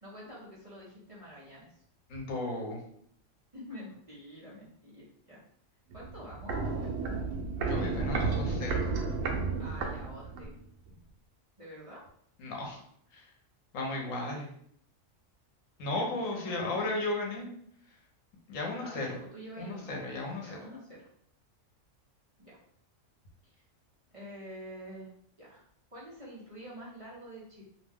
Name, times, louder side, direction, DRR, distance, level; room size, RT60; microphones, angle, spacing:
voice 1, 0.0-1.8 3.5-5.4 5.9-6.9 9.6-10.6 11.6-12.0 14.2-14.5 15.9-16.9 18.8-19.9 20.4-21.1 22.4-22.6 23.4-23.6 24.1-25.1 25.4-27.6, equal, 30° right, -8 dB, 0.7 m, -47 dB
voice 2, 2.1-2.8 7.6-8.8 12.4-12.8 13.1-13.2 13.7-14.5 15.8-17.5 18.5-19.1 19.6-20.6, left 2 dB, 80° left, 0 dB, 1.2 m, -35 dB
Walk footsteps, 5.9-10.6 10.9-11.0, right 4 dB, 75° right, 0.9 m, -32 dB
2.7 x 2.1 x 3.4 m, 0.65 s
omnidirectional pair, 1.4 m